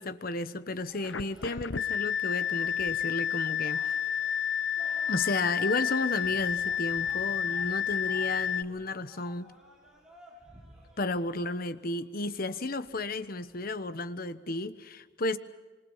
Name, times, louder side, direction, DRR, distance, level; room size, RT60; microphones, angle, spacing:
voice 1, 0.0-3.9 5.1-9.5 11.0-15.4, left 2 dB, 50° left, 12 dB, 1.1 m, -33 dB
sound 1, 0.8-13.7, right 1 dB, 5° right, 7.1 m, -54 dB
sound 2, 1.0-8.6, left 8 dB, 75° left, 0.8 m, -30 dB
27.0 x 24.5 x 5.6 m, 1.3 s
head